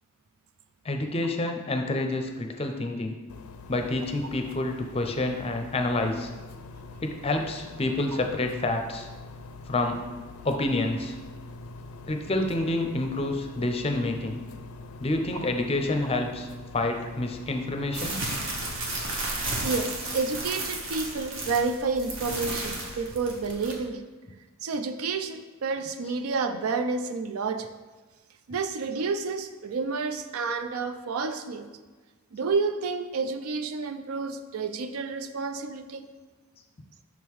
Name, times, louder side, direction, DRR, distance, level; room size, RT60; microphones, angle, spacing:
voice 1, 0.8-3.2 3.7-6.3 7.0-9.1 9.7-10.0 10.4-11.1 12.1-14.4 15.0-16.5 16.7-18.2, left 2 dB, 25° left, 4 dB, 0.5 m, -28 dB
sound 1, 3.3-19.2, left 3 dB, 85° left, 0.5 m, -44 dB
sound 2, 17.9-23.7, right 2 dB, 65° right, 1.1 m, -33 dB
voice 2, 19.6-24.0 24.6-27.7 28.5-31.7 32.3-36.1, right 4 dB, 85° right, 9 dB, 0.4 m, -30 dB
6.0 x 3.6 x 4.6 m, 1.3 s
head